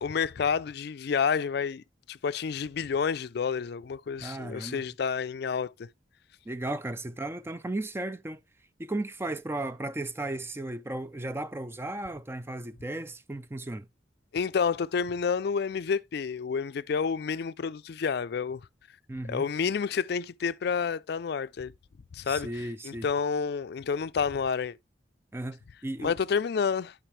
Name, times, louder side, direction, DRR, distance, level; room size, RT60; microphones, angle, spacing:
voice 1, 0.0-5.9 14.3-18.6 19.3-21.7 22.1-22.5 22.8-24.7 26.0-26.9, left 6 dB, 60° left, 0.4 m, -29 dB
voice 2, 4.2-4.8 6.5-8.4 8.8-13.9 19.1-19.5 22.3-23.1 25.3-26.1, right 2 dB, 15° right, 0.3 m, -35 dB
12.5 x 4.9 x 3.1 m
head